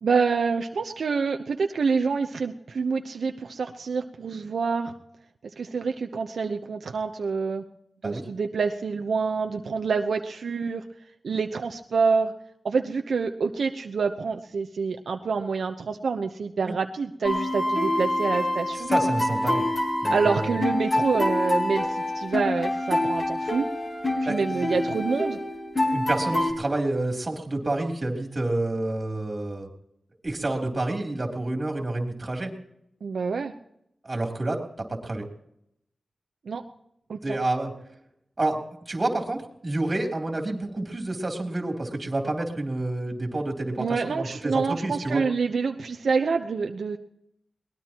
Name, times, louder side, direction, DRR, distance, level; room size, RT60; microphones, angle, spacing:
voice 1, 0.0-4.9 5.6-7.6 8.0-10.8 11.2-12.3 12.6-18.9 20.1-23.7 24.3-25.4 33.0-33.5 36.5-36.6 37.1-37.2 43.8-47.0, right 5 dB, 75° right, 5 dB, 0.9 m, -27 dB
sound 1, 17.2-26.5, left 1 dB, 30° left, 4.3 m, -26 dB
voice 2, 18.8-19.7 20.0-20.6 24.2-24.8 25.9-29.7 30.2-32.5 34.0-35.3 37.2-37.7 38.4-45.2, right 2 dB, 30° right, 2 dB, 3.4 m, -29 dB
22.5 x 20.0 x 3.0 m, 0.78 s
wide cardioid pair, 115°, 0 cm